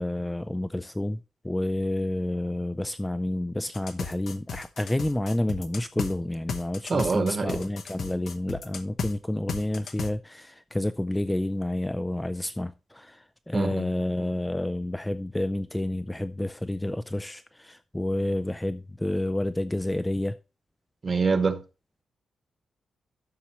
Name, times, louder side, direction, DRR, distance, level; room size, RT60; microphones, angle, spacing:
voice 1, 0.0-20.3, left 1 dB, 5° left, 0.3 m, -29 dB
sound 1, 3.7-6.1 6.5-9.1 9.5-10.1, left 6 dB, 60° left, 1.0 m, -34 dB
voice 2, 6.9-7.6 13.5-13.9 21.0-21.6, right 4 dB, 30° right, 1.1 m, -25 dB
11.5 x 6.9 x 3.0 m
wide cardioid pair, 160°, 0 cm